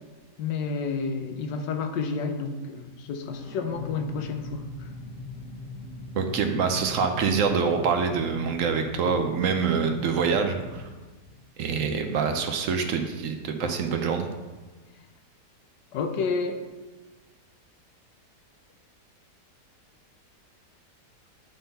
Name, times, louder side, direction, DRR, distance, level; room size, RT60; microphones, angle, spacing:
voice 1, 0.4-4.9 13.6-13.7 15.9-16.6, left 4 dB, 85° left, 6 dB, 1.4 m, -30 dB
sound 1, 3.3-12.0, left 3 dB, 65° left, 1.9 m, -42 dB
voice 2, 6.1-10.8 11.6-14.3, right 5 dB, 60° right, 5 dB, 0.9 m, -25 dB
10.0 x 3.8 x 4.1 m, 1.3 s
omnidirectional pair, 1.8 m